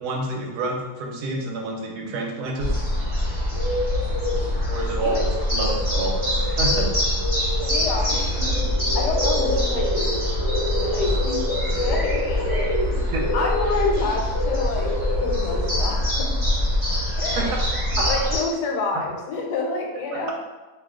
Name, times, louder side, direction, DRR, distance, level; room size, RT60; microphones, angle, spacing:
voice 1, 0.0-2.7 4.7-6.9 13.1-13.3 17.3-17.7 18.0-18.1 18.9-19.1 20.1-20.3, right 2 dB, 75° right, 1 dB, 1.1 m, -28 dB
sound 1, 2.6-18.4, left 1 dB, 30° right, 1.1 m, -23 dB
voice 2, 7.6-8.6 8.9-9.9 10.8-13.1 13.3-14.9 15.2-16.4 17.2-17.6 18.0-20.3, left 3 dB, 85° left, 1 dB, 1.2 m, -29 dB
2.7 x 2.2 x 3.5 m, 1.2 s
omnidirectional pair, 1.8 m